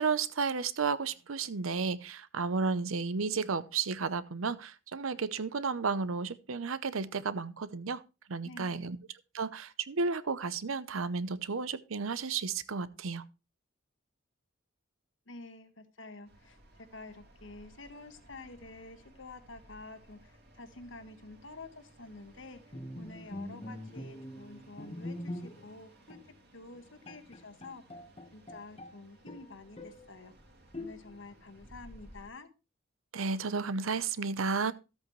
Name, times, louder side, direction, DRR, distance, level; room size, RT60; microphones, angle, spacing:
voice 1, 0.0-8.0 8.3-9.0 9.3-13.2 33.1-34.7, right 4 dB, 90° right, 0.7 m, -32 dB
voice 2, 8.4-8.9 15.3-26.2 26.5-28.0 28.3-30.3 30.8-32.5, left 2 dB, 70° left, 1.4 m, -49 dB
sound 1, 16.2-32.3, right 1 dB, 50° right, 2.4 m, -59 dB
Bowed string instrument, 22.7-25.8 26.1-26.3 26.7-26.8 27.1-29.0 29.3-30.1 30.7-31.3, left 1 dB, 30° left, 1.1 m, -43 dB
13.5 x 8.2 x 3.1 m
head